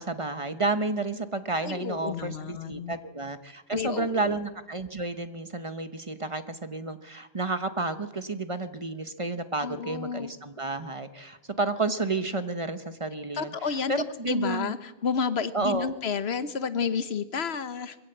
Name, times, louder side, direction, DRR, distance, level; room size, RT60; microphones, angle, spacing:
voice 1, 0.0-14.8 15.5-15.9, right 3 dB, 30° right, 10 dB, 1.0 m, -31 dB
voice 2, 1.6-3.0 3.7-4.4 9.6-10.3 13.3-13.9 14.3-18.0, left 6 dB, 75° left, 13 dB, 1.2 m, -31 dB
22.0 x 16.5 x 7.9 m, 1.1 s
omnidirectional pair, 1.1 m